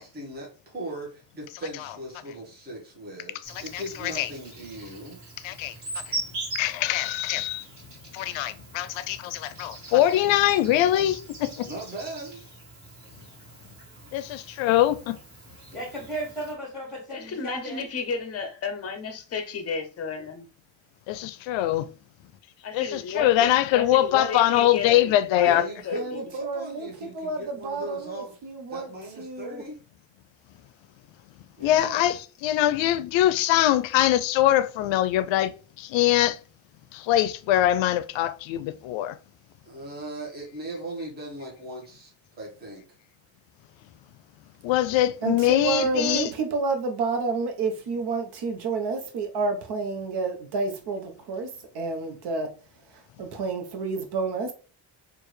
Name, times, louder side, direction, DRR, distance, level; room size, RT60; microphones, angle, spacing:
voice 1, 0.0-5.2 5.6-5.7 11.6-12.4 13.9-14.1 25.4-28.3 28.7-29.8 31.6-32.1 39.6-42.1 42.4-42.8, right 1 dB, 20° right, 1.1 m, -38 dB
voice 2, 1.5-2.0 2.3-2.4 3.4-4.3 5.4-6.2 6.5-7.7 8.1-11.7 14.1-15.2 21.1-21.9 22.7-25.7 31.6-36.4 36.9-39.2 44.6-46.3, left 13 dB, 85° left, 0.5 m, -23 dB
Insect, 3.4-16.5, right 2 dB, 40° right, 1.7 m, -41 dB
voice 3, 15.7-17.8, right 2 dB, ahead, 1.5 m, -35 dB
voice 4, 17.1-20.5 22.6-26.3, left 5 dB, 35° left, 0.6 m, -33 dB
voice 5, 25.9-28.9 29.2-29.6 45.2-52.5 52.9-54.5, right 4 dB, 65° right, 1.0 m, -30 dB
4.5 x 2.5 x 3.1 m
cardioid pair, 155°, 44 cm